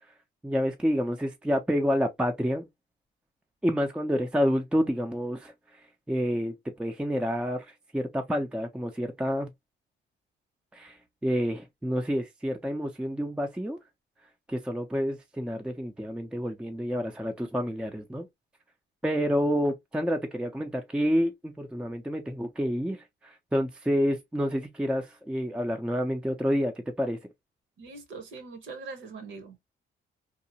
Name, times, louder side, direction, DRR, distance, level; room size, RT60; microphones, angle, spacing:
voice 1, 0.4-2.7 3.6-5.5 6.1-9.5 10.7-13.8 14.5-18.3 19.0-26.7 27.0-27.2, equal, 5° right, 0.4 m, -28 dB
voice 2, 27.8-29.6, right 4 dB, 75° right, 0.9 m, -42 dB
2.8 x 2.0 x 2.7 m
cardioid pair, 90°, 20 cm